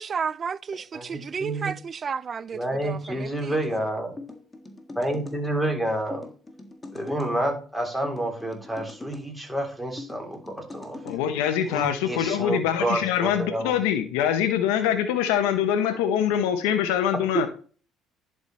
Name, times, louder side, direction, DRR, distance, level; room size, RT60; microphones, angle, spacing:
voice 1, 0.0-3.6, right 6 dB, 40° right, 0.5 m, -32 dB
voice 2, 0.9-1.7 2.5-4.2 5.0-6.2 6.9-11.2 11.7-13.8, right 1 dB, 5° right, 3.7 m, -29 dB
sound 1, 4.2-5.4 6.1-7.3 8.0-9.3 10.0-11.2, left 2 dB, 20° left, 1.8 m, -41 dB
voice 3, 11.0-17.5, left 9 dB, 85° left, 0.8 m, -24 dB
10.5 x 4.8 x 4.2 m
supercardioid pair, 80°, 0 cm